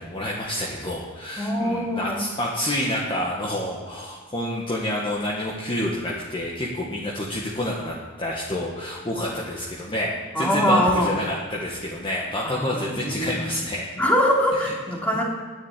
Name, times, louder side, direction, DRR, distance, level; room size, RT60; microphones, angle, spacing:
voice 1, 0.0-13.8 14.5-14.7, left 1 dB, 25° left, -4 dB, 1.6 m, -28 dB
voice 2, 1.4-2.2 10.3-11.1 12.4-13.3 14.0-15.2, equal, 5° left, -3 dB, 2.8 m, -23 dB
11.0 x 10.0 x 8.4 m, 1.5 s
head